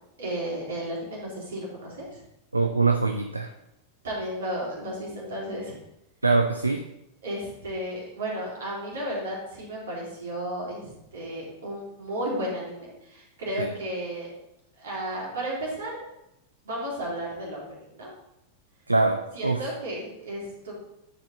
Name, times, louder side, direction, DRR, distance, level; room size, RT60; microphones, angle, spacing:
voice 1, 0.2-2.2 4.0-5.8 7.2-14.3 14.8-16.1 16.6-18.1 19.3-20.7, right 1 dB, 65° right, -4 dB, 3.1 m, -33 dB
voice 2, 2.5-3.5 6.2-6.8 13.6-13.7 18.9-19.6, right 3 dB, 85° right, 6 dB, 0.5 m, -23 dB
9.7 x 5.1 x 4.0 m, 0.84 s
figure-of-eight pair, 90°, 0 cm